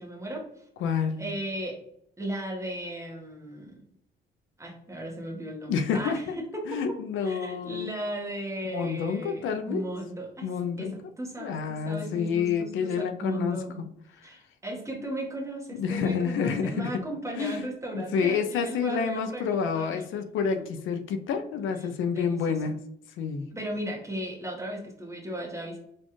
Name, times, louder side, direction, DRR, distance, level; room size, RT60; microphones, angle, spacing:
voice 1, 0.0-0.7 1.2-1.8 2.2-3.8 4.6-7.0 7.2-10.5 10.8-13.8 14.2-20.0 22.1-22.6 23.5-25.8, right 1 dB, 15° right, -1 dB, 1.2 m, -36 dB
voice 2, 0.8-1.2 5.7-6.3 6.7-7.9 8.7-9.8 10.4-10.9 11.4-13.6 14.2-14.3 15.8-17.0 17.4-17.6 17.9-22.8 23.2-23.5, left 6 dB, 80° left, 8 dB, 0.5 m, -28 dB
4.1 x 2.4 x 3.1 m, 0.70 s
cardioid pair, 90°, 20 cm